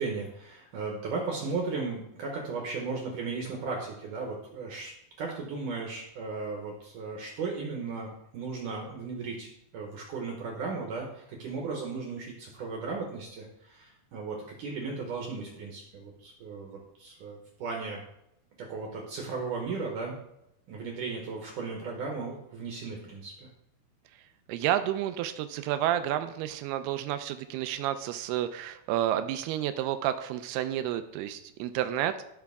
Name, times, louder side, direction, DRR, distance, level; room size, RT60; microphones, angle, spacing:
voice 1, 0.0-4.9 5.2-18.0 18.6-20.2 20.7-23.5, right 4 dB, 65° right, 0 dB, 2.2 m, -36 dB
voice 2, 24.5-32.2, right 11 dB, 80° right, 10 dB, 2.4 m, -30 dB
13.5 x 5.8 x 3.5 m, 0.82 s
omnidirectional pair, 4.9 m